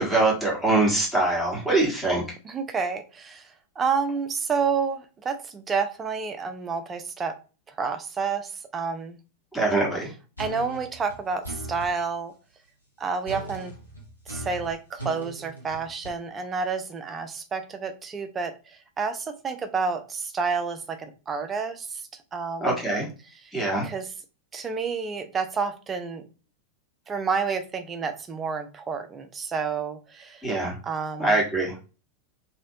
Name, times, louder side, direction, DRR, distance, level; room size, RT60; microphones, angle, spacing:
voice 1, 0.0-2.2 9.5-10.1 22.6-23.1 23.5-23.9 30.4-30.7 31.2-31.7, right 2 dB, 5° left, -4 dB, 1.3 m, -23 dB
voice 2, 2.4-7.4 7.7-9.2 10.4-12.3 13.0-13.7 14.3-22.8 23.3-23.5 23.8-24.1 24.5-26.3 27.1-30.5 30.8-31.4, right 5 dB, 20° right, 8 dB, 0.5 m, -30 dB
sound 1, 10.4-11.9 13.2-16.1, right 1 dB, 85° left, 1.0 m, -38 dB
3.1 x 2.8 x 2.7 m, 0.33 s
figure-of-eight pair, 90°, 0 cm